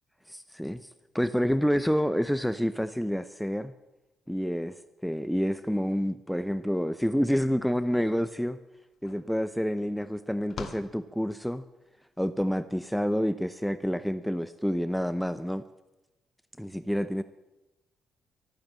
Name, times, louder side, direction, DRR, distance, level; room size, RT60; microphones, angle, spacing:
voice 1, 0.3-0.8 1.1-3.7 4.3-4.8 5.0-8.6 9.0-11.6 12.2-15.6 16.6-17.2, equal, ahead, 12 dB, 0.6 m, -28 dB
sound 1, 8.7-11.8, left 6 dB, 55° left, 1.9 m, -46 dB
14.5 x 13.5 x 7.4 m, 1.0 s
cardioid pair, 90°, 0 cm